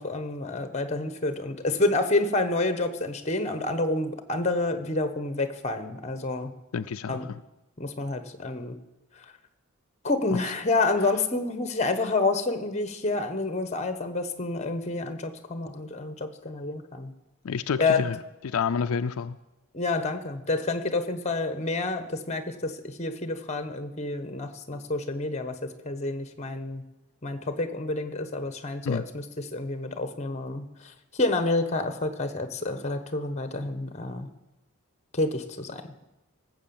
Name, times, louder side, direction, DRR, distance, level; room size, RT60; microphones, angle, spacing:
voice 1, 0.0-6.5 7.1-7.3 7.8-8.8 9.2-9.3 10.0-17.1 17.8-18.1 19.7-26.8 27.2-34.3 35.1-35.8, left 2 dB, 30° left, 10 dB, 1.1 m, -29 dB
voice 2, 6.7-7.4 17.4-18.2 18.4-19.4 28.9-29.1, left 6 dB, 75° left, 10 dB, 0.4 m, -29 dB
18.0 x 7.8 x 7.1 m, 0.97 s
head